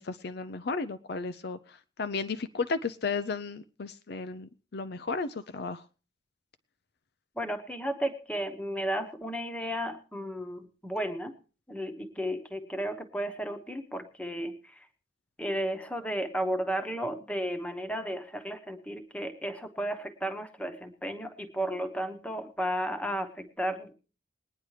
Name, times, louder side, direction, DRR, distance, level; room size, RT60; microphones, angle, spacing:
voice 1, 0.0-5.8, left 4 dB, 55° left, 11 dB, 0.5 m, -34 dB
voice 2, 7.4-11.3 11.7-14.9 15.4-23.9, equal, 5° left, 8 dB, 1.1 m, -33 dB
21.5 x 9.7 x 3.2 m, 0.35 s
head